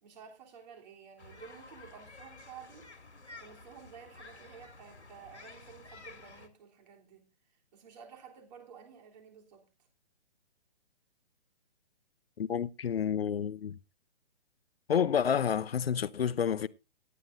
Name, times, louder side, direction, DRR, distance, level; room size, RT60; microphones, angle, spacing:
voice 1, 0.0-2.9 3.4-9.7, right 7 dB, 40° right, 3.4 m, -52 dB
sound 1, 1.2-6.5, left 3 dB, 85° left, 2.5 m, -52 dB
voice 2, 12.4-13.7 14.9-16.7, left 8 dB, 60° left, 0.8 m, -29 dB
18.0 x 11.0 x 2.6 m
figure-of-eight pair, 140°, 33 cm